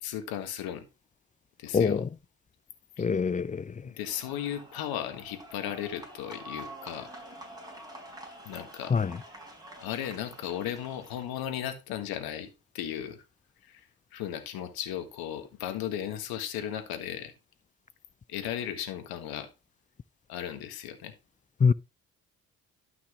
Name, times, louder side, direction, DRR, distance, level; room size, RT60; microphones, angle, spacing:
voice 1, 0.0-0.8 1.6-2.0 3.0-3.1 3.8-7.1 8.4-9.0 9.8-12.5 12.7-13.2 13.6-13.9 14.1-17.3 18.3-19.5 20.3-21.1, left 10 dB, 80° left, 1.6 m, -36 dB
voice 2, 1.7-2.1 3.0-3.7 8.9-9.2 21.6-21.7, left 5 dB, 20° left, 0.5 m, -24 dB
sound 1, 4.0-11.4, right 1 dB, 10° right, 4.8 m, -47 dB
12.0 x 6.0 x 3.0 m
supercardioid pair, 55°, 36 cm